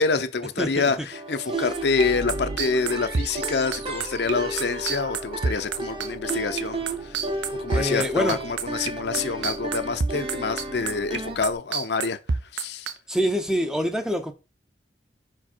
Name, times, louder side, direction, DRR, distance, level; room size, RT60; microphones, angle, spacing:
voice 1, 0.0-7.1 7.5-12.2 12.5-12.9, left 4 dB, 65° left, 0.6 m, -27 dB
voice 2, 0.6-0.9 1.6-1.7 7.7-8.4 13.1-14.3, equal, 5° right, 0.6 m, -25 dB
sound 1, 1.1-11.4, right 2 dB, 30° right, 0.8 m, -33 dB
sound 2, 1.6-11.5, right 2 dB, 65° right, 1.7 m, -42 dB
West Side Bike Beat, 1.7-8.9 9.1-12.9, right 5 dB, 85° right, 0.7 m, -27 dB
5.2 x 4.7 x 4.4 m
head